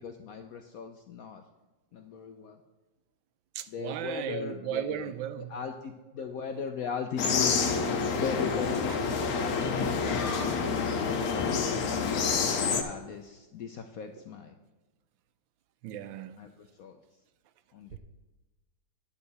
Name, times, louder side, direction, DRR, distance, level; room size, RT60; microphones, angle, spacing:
voice 1, 0.0-1.4 1.9-2.6 3.7-5.1 5.4-9.7 11.1-12.2 12.7-14.6 16.4-17.0 17.7-18.0, left 6 dB, 75° left, 0.8 m, -38 dB
voice 2, 3.5-5.5 15.8-16.4 17.9-18.0, right 10 dB, 85° right, 1.3 m, -36 dB
sound 1, 7.2-12.8, left 5 dB, 60° left, 1.2 m, -28 dB
9.9 x 6.6 x 4.1 m
omnidirectional pair, 2.1 m